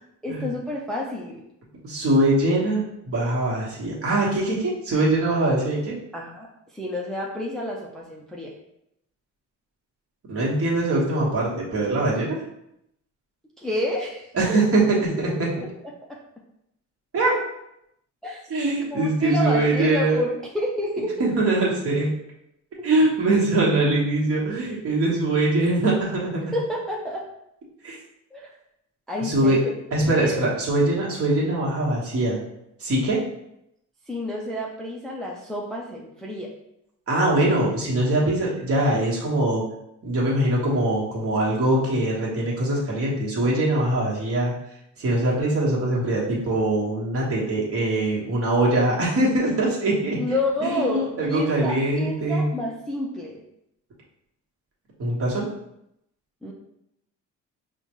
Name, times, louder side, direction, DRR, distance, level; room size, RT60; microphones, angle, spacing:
voice 1, 0.2-1.4 6.1-6.5 6.7-8.5 13.6-14.6 15.2-15.4 16.1-16.2 18.2-18.4 18.9-21.3 22.8-22.9 26.5-27.3 28.3-28.5 29.1-29.7 30.1-30.5 34.1-36.5 50.2-53.4 56.4-56.5, left 1 dB, ahead, -2 dB, 0.4 m, -29 dB
voice 2, 1.8-5.9 10.3-12.4 14.3-15.3 17.1-17.3 18.5-20.2 21.2-22.1 22.8-26.5 27.8-28.0 29.2-29.6 29.9-32.4 32.8-33.2 37.1-39.6 40.0-44.5 45.0-50.2 50.6-52.5 55.0-55.5, right 2 dB, 45° right, -4 dB, 1.3 m, -22 dB
5.5 x 2.2 x 3.0 m, 0.80 s
cardioid pair, 140°, 31 cm